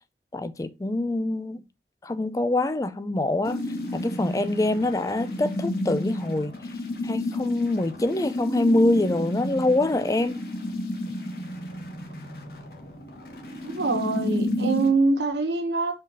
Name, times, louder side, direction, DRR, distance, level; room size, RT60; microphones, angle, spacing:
voice 1, 0.3-1.6 2.0-3.6 3.9-6.5 7.0-10.4, left 2 dB, 20° left, 0.4 m, -25 dB
sound 1, 3.4-14.9, left 1 dB, 60° left, 1.4 m, -32 dB
voice 2, 13.6-16.0, right 3 dB, 85° right, 1.5 m, -24 dB
5.2 x 4.0 x 5.6 m
head